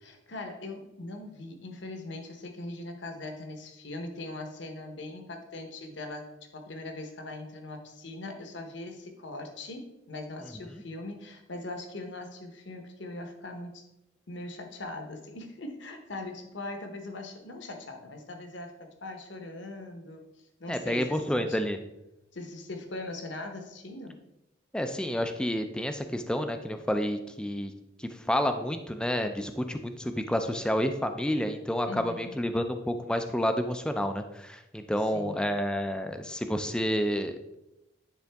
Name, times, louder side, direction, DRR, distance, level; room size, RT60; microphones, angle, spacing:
voice 1, 0.0-6.3 6.5-13.8 14.3-20.2 20.6-21.6 22.3-24.2 31.9-32.3 35.1-35.5, left 2 dB, 65° left, 5 dB, 1.0 m, -40 dB
voice 2, 20.7-21.8 24.7-27.7 28.0-37.4, equal, 5° left, 7 dB, 0.4 m, -29 dB
9.6 x 3.9 x 3.4 m, 0.91 s
head